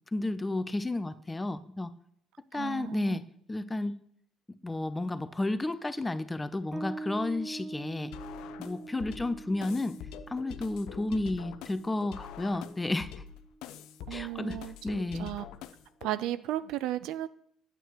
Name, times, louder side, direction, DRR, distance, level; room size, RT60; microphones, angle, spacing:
voice 1, 0.1-1.9 2.5-3.2 3.5-3.9 4.6-8.1 8.6-10.0 10.3-13.1 14.1-14.6 14.8-15.3, left 2 dB, 15° left, 14 dB, 0.6 m, -32 dB
voice 2, 2.5-3.2 14.1-14.8 15.1-15.4 16.0-17.3, right 13 dB, 65° right, 15 dB, 0.3 m, -34 dB
Bass guitar, 6.7-13.9, right 2 dB, 30° right, 0.7 m, -44 dB
sound 1, 8.1-16.1, left 9 dB, 65° left, 0.5 m, -45 dB
9.1 x 8.3 x 3.0 m, 0.67 s
hypercardioid pair, 55°, 0 cm